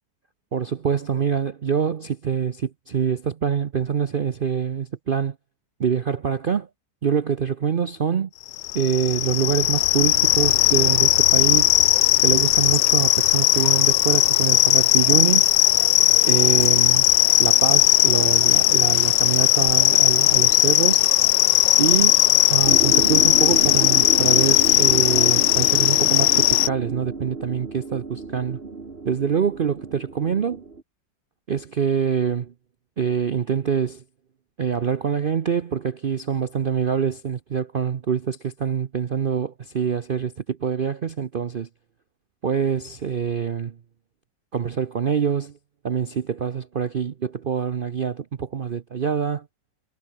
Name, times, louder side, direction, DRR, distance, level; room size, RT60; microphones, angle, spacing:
voice 1, 0.5-5.3 5.8-6.7 7.0-8.3 8.7-11.7 12.2-15.5 16.2-17.1 17.4-21.0 21.8-28.6 29.0-30.6 31.5-32.5 33.0-34.0 34.6-41.7 42.4-43.8 44.5-45.6 45.8-49.5, right 7 dB, 80° right, 0.4 m, -25 dB
sound 1, 8.5-26.7, left 16 dB, 80° left, 1.2 m, -18 dB
sound 2, 22.7-30.8, right 3 dB, 30° right, 2.3 m, -31 dB
omnidirectional pair, 2.0 m